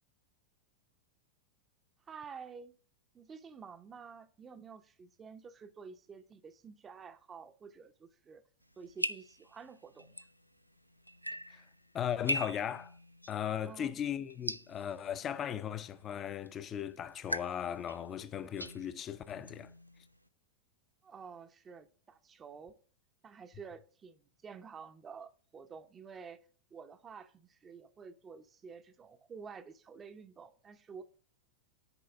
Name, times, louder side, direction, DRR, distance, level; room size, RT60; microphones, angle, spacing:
voice 1, 2.1-2.8 3.1-8.4 8.8-10.3 13.6-14.0 21.0-22.7 23.2-26.4 26.7-31.0, right 5 dB, 20° right, 0.8 m, -50 dB
sound 1, 8.6-20.3, equal, 90° left, 0.4 m, -43 dB
voice 2, 11.9-12.9 13.3-19.7, left 9 dB, 30° left, 0.7 m, -37 dB
9.9 x 4.7 x 3.5 m
figure-of-eight pair, 90°, 0 cm